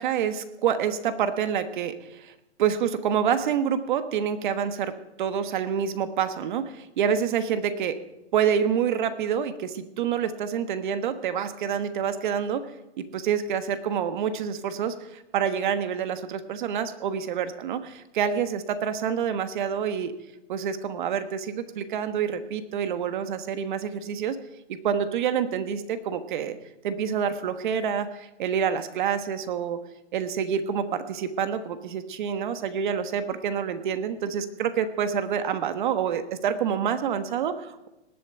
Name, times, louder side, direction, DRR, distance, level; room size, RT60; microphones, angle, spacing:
voice 1, 0.0-2.3 2.6-8.0 8.3-12.7 13.0-20.1 20.5-24.4 24.7-26.6 26.8-29.8 30.1-37.9, right 8 dB, 40° right, 10 dB, 1.3 m, -27 dB
19.0 x 8.4 x 7.7 m, 0.93 s
hypercardioid pair, 160°, 36 cm